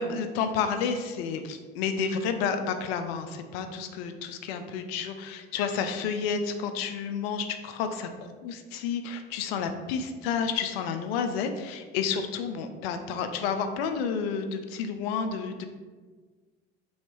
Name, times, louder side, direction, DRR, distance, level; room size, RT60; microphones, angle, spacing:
voice 1, 0.0-8.1 8.4-15.7, left 6 dB, 70° left, 7 dB, 0.5 m, -30 dB
3.1 x 2.8 x 3.2 m, 1.4 s
hypercardioid pair, 65°, 31 cm